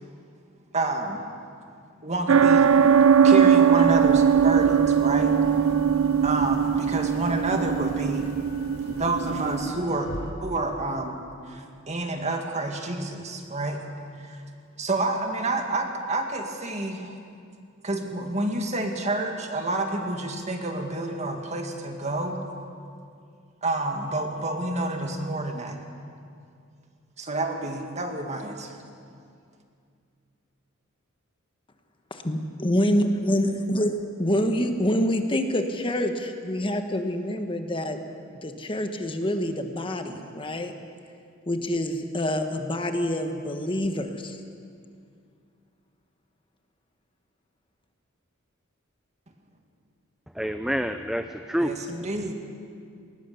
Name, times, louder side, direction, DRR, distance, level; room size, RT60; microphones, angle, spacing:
voice 1, 0.7-1.2 2.0-2.7 3.2-5.4 6.2-8.3 8.9-10.1 10.4-11.2 11.5-13.8 14.2-14.4 14.8-17.2 17.8-22.4 23.6-25.8 27.2-28.8 51.6-52.3, right 2 dB, 35° right, 3 dB, 2.1 m, -29 dB
sound 1, 2.3-9.7, right 7 dB, 85° right, 0.5 m, -20 dB
sound 2, 3.8-10.3, equal, 60° left, 2.0 m, -38 dB
voice 2, 32.1-38.0 38.4-40.7 41.5-44.4, equal, 25° left, 6 dB, 1.2 m, -26 dB
voice 3, 50.4-51.7, equal, ahead, 8 dB, 0.5 m, -27 dB
21.0 x 19.5 x 7.0 m, 2.3 s
head